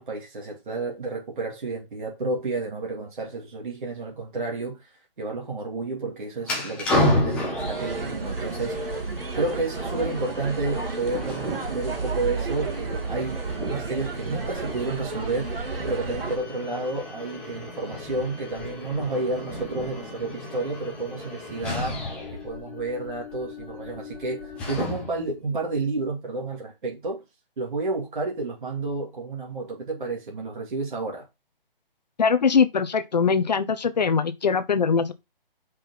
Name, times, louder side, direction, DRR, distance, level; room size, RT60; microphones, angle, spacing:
voice 1, 0.0-22.0 22.4-27.2 27.6-31.3, right 3 dB, 55° right, 2.9 m, -31 dB
sound 1, 6.4-25.3, left 1 dB, 5° left, 0.8 m, -33 dB
sound 2, 7.6-16.4, right 4 dB, 75° right, 2.0 m, -32 dB
Thunder, 9.2-22.0, right 4 dB, 35° right, 3.2 m, -43 dB
voice 2, 32.2-35.1, left 5 dB, 45° left, 0.8 m, -22 dB
5.7 x 5.2 x 5.7 m
hypercardioid pair, 165°, 29 cm